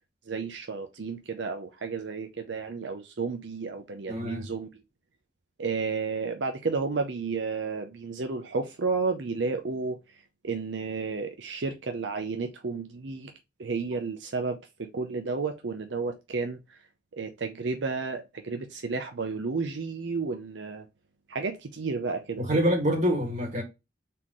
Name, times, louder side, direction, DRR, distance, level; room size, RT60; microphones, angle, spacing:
voice 1, 0.3-4.7 5.6-10.0 10.4-13.3 13.6-16.8 17.1-20.8 21.3-22.7, right 4 dB, 85° right, 0.6 m, -32 dB
voice 2, 4.1-4.5 22.4-23.6, equal, 40° right, 2.0 m, -26 dB
4.2 x 3.8 x 3.0 m
head